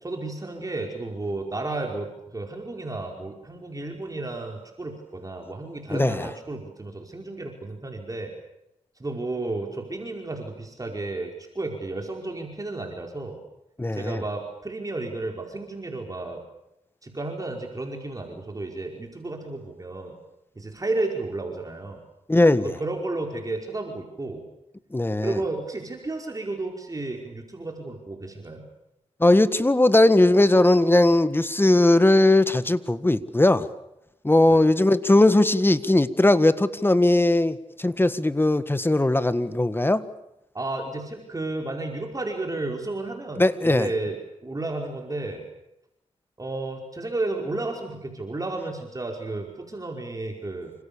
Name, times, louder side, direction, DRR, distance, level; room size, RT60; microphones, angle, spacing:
voice 1, 0.0-8.3 9.0-13.4 13.9-16.4 17.0-20.2 20.5-22.0 22.6-24.4 25.2-28.7 34.5-34.7 40.5-45.4 46.4-50.7, right 2 dB, 25° right, 2 dB, 5.0 m, -32 dB
voice 2, 5.9-6.3 13.8-14.2 22.3-22.7 24.9-25.4 29.2-33.7 34.2-40.0 43.4-43.9, left 2 dB, 15° left, 13 dB, 1.6 m, -19 dB
28.5 x 26.5 x 7.1 m, 0.84 s
cardioid pair, 75°, 13 cm